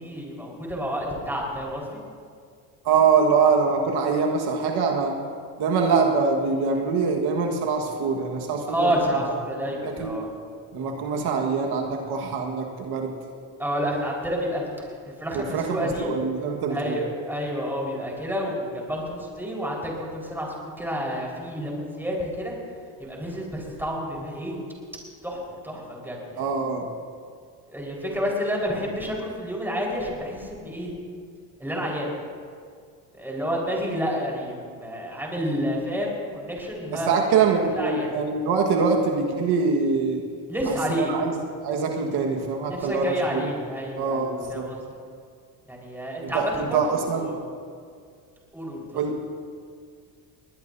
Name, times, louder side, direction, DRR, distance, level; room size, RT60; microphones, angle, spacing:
voice 1, 0.0-2.0 8.7-10.3 13.6-16.1 16.7-22.5 23.0-24.6 25.2-26.5 27.7-30.9 31.6-32.1 33.1-37.2 37.5-38.1 40.5-41.1 42.0-42.2 42.7-44.9 45.7-47.4 48.5-48.8, equal, 5° right, -3 dB, 4.7 m, -29 dB
voice 2, 2.8-5.2 5.6-8.9 9.5-10.1 10.7-13.1 15.3-17.0 26.4-26.9 36.9-40.2 40.7-41.3 41.6-43.4 44.0-44.7 46.2-47.3 48.9-49.1, right 5 dB, 70° right, 1 dB, 1.6 m, -24 dB
21.0 x 20.0 x 2.7 m, 2.2 s
cardioid pair, 115°, 40 cm